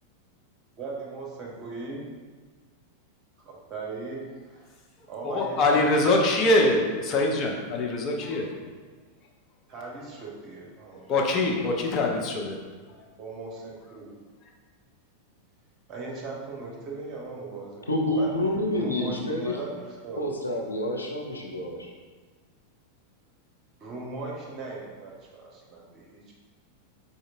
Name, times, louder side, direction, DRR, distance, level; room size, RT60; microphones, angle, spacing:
voice 1, 0.8-2.1 3.4-4.7 5.1-5.8 9.7-11.1 13.2-14.1 15.9-18.4 18.7-20.2 23.8-26.3, right 3 dB, 30° right, -2 dB, 1.2 m, -38 dB
voice 2, 5.2-8.5 10.9-12.6 12.9-13.1 14.0-14.1 14.4-14.5, left 2 dB, 35° left, 0 dB, 0.7 m, -24 dB
voice 3, 17.9-19.6 20.2-21.9, left 1 dB, 80° left, -1 dB, 0.6 m, -28 dB
4.9 x 4.1 x 2.5 m, 1.4 s
figure-of-eight pair, 90°, 0 cm